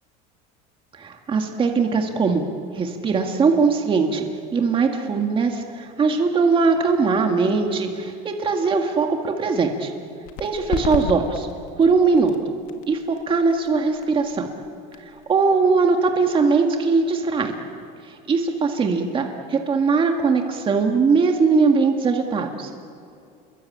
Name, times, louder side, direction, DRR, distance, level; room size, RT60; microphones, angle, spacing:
voice 1, 1.0-2.4 2.7-4.3 4.5-9.9 10.4-11.5 11.8-12.4 12.9-14.5 15.3-17.6 18.3-22.7, right 4 dB, 25° right, 3 dB, 2.0 m, -20 dB
sound 1, 10.2-17.6, left 8 dB, 70° left, 2.4 m, -36 dB
29.0 x 22.0 x 8.6 m, 2.4 s
cardioid pair, 140°, 21 cm